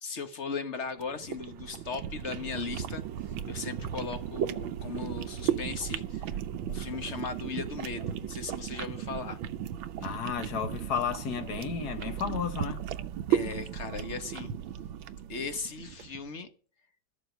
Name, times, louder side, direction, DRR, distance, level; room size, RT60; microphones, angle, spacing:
voice 1, 0.0-3.0 3.5-6.4 6.7-9.4 13.3-14.5 15.3-16.5, left 5 dB, 40° left, 1.5 m, -37 dB
sound 1, 1.0-16.2, right 10 dB, 90° right, 1.6 m, -35 dB
voice 2, 10.0-12.9, left 7 dB, 55° left, 1.6 m, -33 dB
13.5 x 7.1 x 8.3 m
omnidirectional pair, 2.1 m